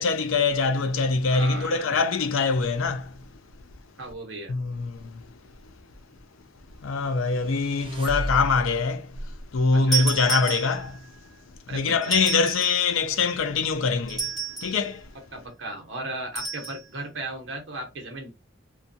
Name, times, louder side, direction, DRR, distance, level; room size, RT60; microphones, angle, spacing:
voice 1, 0.0-3.1 4.5-5.3 6.8-9.2 9.5-11.0 11.7-14.3 14.6-15.1, left 4 dB, 85° left, 0.5 m, -24 dB
voice 2, 1.3-1.9 4.0-4.5 9.7-10.0 11.7-12.1 15.3-18.3, right 2 dB, 65° right, 0.9 m, -36 dB
sound 1, 7.2-9.0, equal, 25° right, 0.4 m, -34 dB
Shop door bell, 9.9-11.1 12.0-12.9 14.1-14.8 16.4-16.8, right 5 dB, ahead, 1.0 m, -30 dB
2.5 x 2.3 x 2.6 m
head